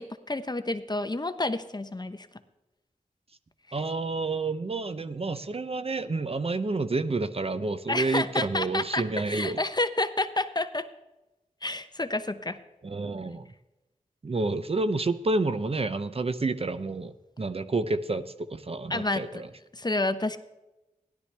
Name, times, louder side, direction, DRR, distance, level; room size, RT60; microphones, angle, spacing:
voice 1, 0.0-2.3 7.9-10.9 11.6-12.6 18.9-19.4 19.7-20.4, left 2 dB, 30° left, 10 dB, 0.8 m, -29 dB
voice 2, 3.7-9.6 12.8-13.5 14.2-19.5, right 3 dB, 45° right, 11 dB, 0.7 m, -29 dB
16.5 x 11.5 x 3.4 m, 1.0 s
wide cardioid pair, 60°, 14 cm